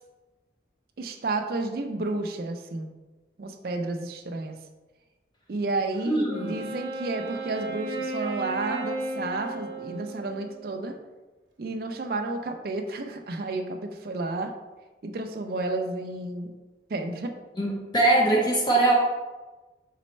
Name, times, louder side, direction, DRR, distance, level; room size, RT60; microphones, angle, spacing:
voice 1, 1.0-2.9 3.4-4.6 5.5-11.0 11.6-14.5 15.0-16.5 16.9-17.3, right 2 dB, 55° right, 4 dB, 0.4 m, -31 dB
voice 2, 6.1-6.6 17.6-18.9, right 2 dB, 25° left, -2 dB, 0.7 m, -22 dB
Wind instrument woodwind instrument, 6.3-10.8, right 3 dB, 80° right, 0.7 m, -35 dB
4.2 x 4.1 x 3.1 m, 1.2 s
head